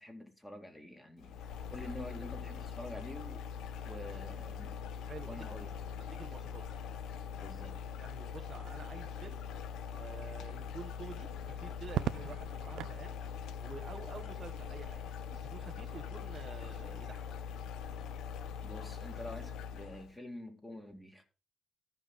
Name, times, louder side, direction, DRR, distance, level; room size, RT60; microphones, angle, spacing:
voice 1, 0.0-3.5 3.8-4.7 5.3-5.8 7.3-7.8 18.6-21.2, left 1 dB, 10° left, 2.2 m, -47 dB
sound 1, 1.2-20.1, left 7 dB, 85° left, 0.6 m, -42 dB
voice 2, 5.1-5.7 6.1-6.7 8.0-9.4 9.8-13.2 13.6-15.0 15.3-17.3, right 5 dB, 35° right, 0.9 m, -49 dB
Crackle, 11.9-13.0 14.6-15.2, right 12 dB, 85° right, 0.4 m, -38 dB
13.5 x 5.5 x 3.9 m
cardioid pair, 90°, 0 cm